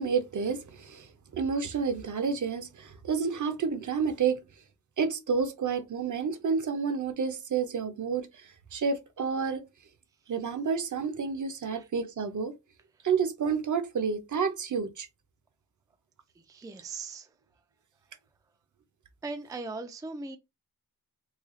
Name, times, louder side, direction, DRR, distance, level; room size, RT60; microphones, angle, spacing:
voice 1, 0.0-4.4 5.0-9.6 10.3-12.5 13.0-15.1, right 5 dB, 55° right, 0.6 m, -30 dB
voice 2, 16.4-17.3 19.2-20.4, right 3 dB, 10° right, 0.3 m, -39 dB
3.2 x 2.3 x 3.6 m
wide cardioid pair, 160°, 36 cm